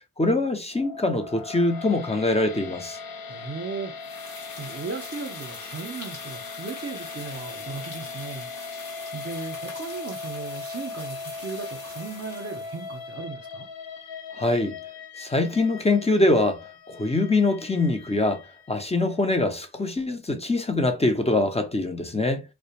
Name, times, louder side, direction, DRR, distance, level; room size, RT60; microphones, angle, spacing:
voice 1, 0.2-3.0 14.4-14.8 15.2-16.6 16.9-18.4 18.7-22.4, left 2 dB, 15° left, 0.7 m, -23 dB
sound 1, 0.7-18.9, left 4 dB, 80° left, 0.5 m, -39 dB
voice 2, 3.3-8.8 9.1-13.7, right 4 dB, 40° right, 0.7 m, -37 dB
sound 2, 4.0-13.0, left 3 dB, 55° left, 1.0 m, -43 dB
2.4 x 2.1 x 2.9 m
cardioid pair, 45°, 36 cm